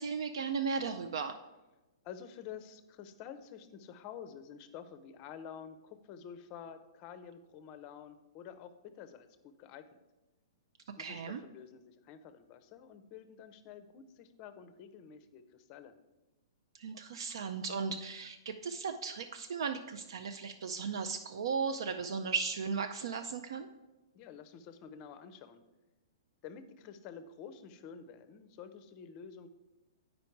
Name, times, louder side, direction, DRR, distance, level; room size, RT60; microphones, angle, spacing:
voice 1, 0.0-1.4 11.0-11.4 16.7-23.7, right 5 dB, 70° right, 7 dB, 0.5 m, -36 dB
voice 2, 2.0-10.0 11.0-15.9 24.1-25.6 26.4-29.5, left 7 dB, 25° left, 11 dB, 0.5 m, -49 dB
8.4 x 5.2 x 4.5 m, 1.1 s
hypercardioid pair, 165°, 3 cm